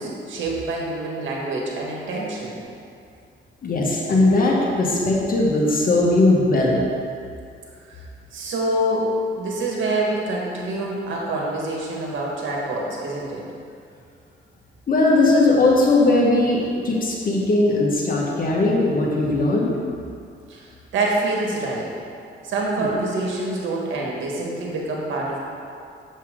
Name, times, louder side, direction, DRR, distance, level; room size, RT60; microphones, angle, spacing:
voice 1, 0.0-2.6 7.9-8.0 8.3-13.4 20.5-20.7 20.9-21.9 22.4-25.4, right 2 dB, 75° right, -3 dB, 1.8 m, -26 dB
voice 2, 3.6-6.8 14.9-19.7 22.8-22.9, left 2 dB, 45° left, -3 dB, 1.7 m, -19 dB
7.5 x 7.2 x 3.8 m, 2.4 s
cardioid pair, 90°, 20 cm